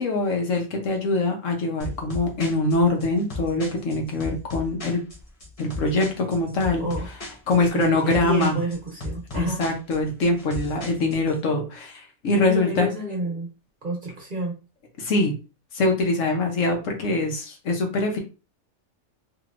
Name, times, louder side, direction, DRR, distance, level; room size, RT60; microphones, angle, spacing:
voice 1, 0.0-5.0 5.6-6.9 7.5-8.6 9.3-12.9 15.0-15.3 15.7-18.2, left 2 dB, 65° left, 2 dB, 1.1 m, -23 dB
sound 1, 1.8-11.3, left 2 dB, 35° left, 0.6 m, -36 dB
voice 2, 7.7-9.6 12.4-13.5 13.8-14.6, right 2 dB, 40° right, -1 dB, 1.1 m, -29 dB
3.1 x 3.0 x 2.4 m, 0.31 s
omnidirectional pair, 1.5 m